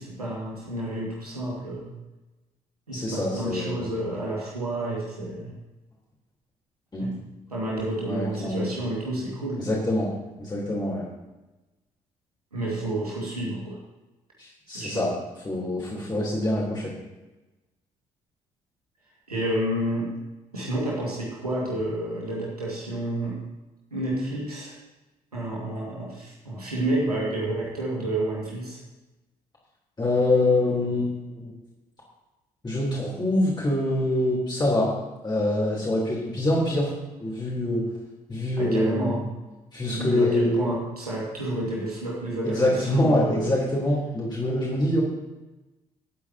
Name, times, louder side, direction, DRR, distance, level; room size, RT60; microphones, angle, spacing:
voice 1, 0.0-1.9 2.9-5.5 7.0-7.1 7.5-9.7 12.5-13.8 14.7-15.1 19.3-20.1 20.5-23.4 23.9-24.8 25.3-28.8 38.6-39.2 39.9-43.5, right 1 dB, 90° right, -5 dB, 2.0 m, -30 dB
voice 2, 2.9-3.9 6.9-7.1 8.0-8.6 9.6-10.1 10.4-11.0 14.4-15.1 15.4-16.9 30.0-31.5 32.6-34.9 35.2-36.9 37.2-37.8 38.3-39.2 39.7-40.7 42.4-45.0, left 1 dB, 25° left, -5 dB, 3.4 m, -25 dB
24.0 x 8.4 x 2.9 m, 1.1 s
figure-of-eight pair, 45°, 19 cm